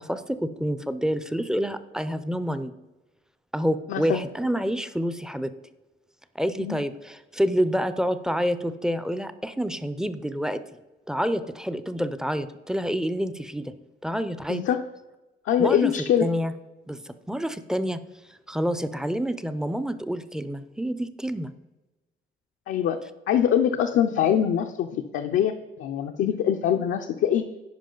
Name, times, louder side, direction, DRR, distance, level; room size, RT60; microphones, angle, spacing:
voice 1, 0.0-2.7 3.5-5.5 6.4-10.6 11.1-13.7 14.0-14.6 15.6-15.9 16.2-16.5 16.9-18.0 18.3-21.5, equal, 5° right, 12 dB, 0.5 m, -28 dB
voice 2, 3.9-4.3 6.6-6.8 14.5-14.8 15.4-16.3 22.7-23.0 23.3-27.5, left 9 dB, 75° left, 4 dB, 0.5 m, -23 dB
10.5 x 5.0 x 3.8 m, 1.1 s
cardioid pair, 90°, 20 cm